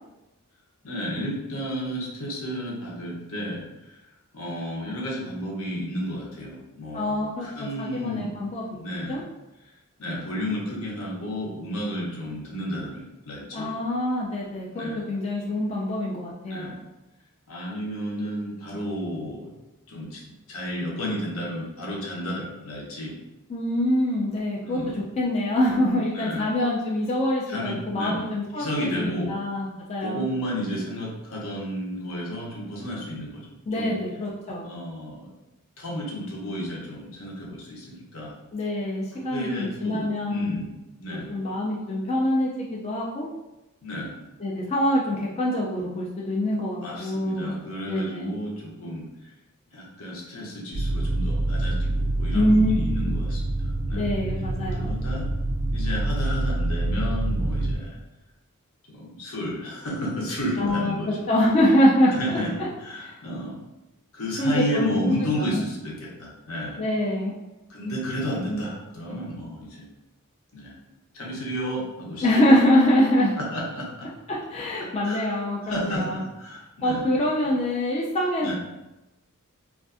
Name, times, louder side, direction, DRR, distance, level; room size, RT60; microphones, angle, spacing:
voice 1, 0.8-4.0 4.3-8.3 8.7-9.2 10.0-13.7 14.7-15.1 16.5-16.8 17.5-19.5 19.9-20.2 20.5-23.2 24.6-25.0 26.1-26.5 27.5-28.2 28.5-29.3 30.0-34.0 34.6-35.3 35.8-38.4 39.1-40.7 41.0-41.4 43.8-44.1 46.8-49.1 49.7-54.1 54.7-55.3 55.7-58.0 58.9-61.2 62.1-63.6 64.1-66.8 67.7-69.9 70.5-70.8 71.1-72.3 73.3-74.1 75.0-77.1 78.4-78.5, equal, 70° left, -3 dB, 0.8 m, -32 dB
voice 2, 6.9-8.6 9.1-9.2 13.5-16.7 23.5-30.2 33.7-34.7 38.5-40.6 41.1-43.3 44.4-47.6 47.9-48.3 52.3-52.8 53.9-54.9 60.6-60.9 61.3-62.1 63.0-63.1 64.4-64.9 65.4-65.6 66.8-67.3 72.2-73.3 74.3-76.2 76.8-78.5, left 1 dB, 30° left, -5 dB, 0.3 m, -24 dB
sound 1, 50.7-57.8, right 2 dB, 70° right, 0.3 m, -26 dB
2.4 x 2.3 x 2.4 m, 0.99 s
head